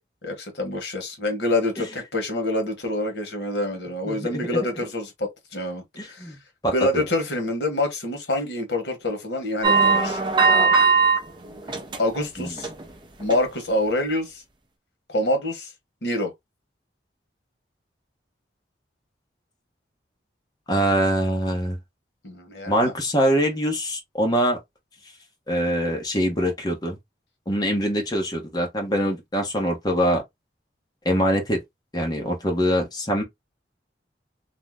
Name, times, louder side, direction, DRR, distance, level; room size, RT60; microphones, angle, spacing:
voice 1, 0.2-6.3 6.7-10.2 12.0-12.7 13.2-14.4 15.1-15.7 16.0-16.3 22.2-22.9, left 1 dB, 70° left, 1.1 m, -26 dB
voice 2, 4.1-4.5 6.0-6.4 6.6-6.7 12.4-12.5 20.7-21.8 22.7-24.6 25.5-27.0 27.5-30.2 31.0-31.6 31.9-33.2, equal, 20° left, 0.9 m, -23 dB
sound 1, 9.6-11.2 11.6-12.2 12.6-12.8 13.3-13.4, right 5 dB, 25° right, 0.5 m, -19 dB
2.7 x 2.1 x 3.4 m
head